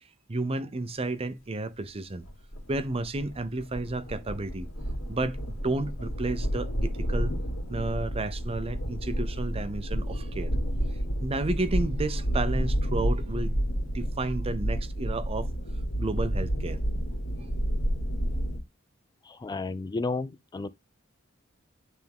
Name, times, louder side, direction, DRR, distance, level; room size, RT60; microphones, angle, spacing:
voice 1, 0.3-2.3 2.7-4.7 5.1-5.4 5.6-7.3 7.7-10.5 11.2-13.6 13.9-15.5 16.0-16.8, right 2 dB, 30° right, 0.6 m, -31 dB
sound 1, 2.2-18.6, equal, 80° left, 2.3 m, -30 dB
voice 2, 19.2-20.7, left 3 dB, 20° left, 0.3 m, -32 dB
9.3 x 3.6 x 3.5 m
head